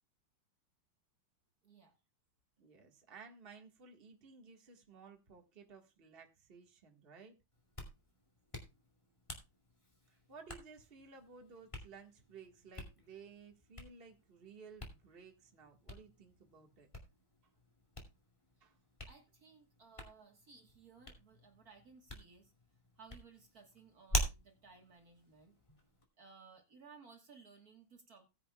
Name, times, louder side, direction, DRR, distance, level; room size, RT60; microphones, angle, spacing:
voice 1, 1.6-2.0 19.1-22.5 23.0-25.6 26.2-28.3, right 5 dB, 50° right, 4 dB, 1.9 m, -59 dB
voice 2, 2.6-7.4 10.1-16.9 18.6-18.8, right 5 dB, 30° right, 3 dB, 1.7 m, -56 dB
Hands, 7.5-26.0, left 1 dB, 15° left, 2.3 m, -46 dB
17.5 x 9.8 x 2.3 m, 0.26 s
omnidirectional pair, 2.1 m